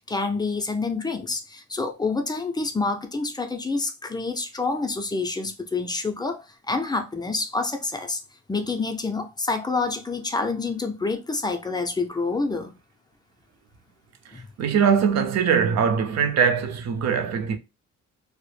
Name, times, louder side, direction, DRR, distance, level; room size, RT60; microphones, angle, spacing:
voice 1, 0.0-8.2 8.5-12.7 14.3-14.5, left 3 dB, 15° left, 0.4 m, -27 dB
voice 2, 14.3-17.6, right 7 dB, 60° right, 0.5 m, -22 dB
2.1 x 2.0 x 3.1 m
cardioid pair, 90°, 30 cm